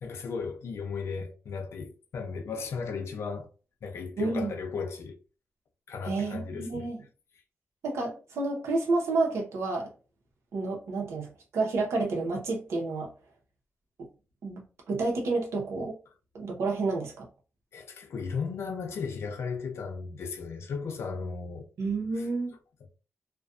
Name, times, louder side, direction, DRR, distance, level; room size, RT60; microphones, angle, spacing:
voice 1, 0.0-3.5 3.8-5.2 5.9-6.9 17.7-21.7 22.2-22.3, left 5 dB, 75° left, 0.5 m, -35 dB
voice 2, 4.2-4.5 6.0-7.0 7.8-9.9 10.5-13.1 14.4-15.9 16.3-17.3 21.8-22.5, right 3 dB, 85° right, 0.8 m, -30 dB
2.4 x 2.2 x 2.4 m
wide cardioid pair, 120°, 5 cm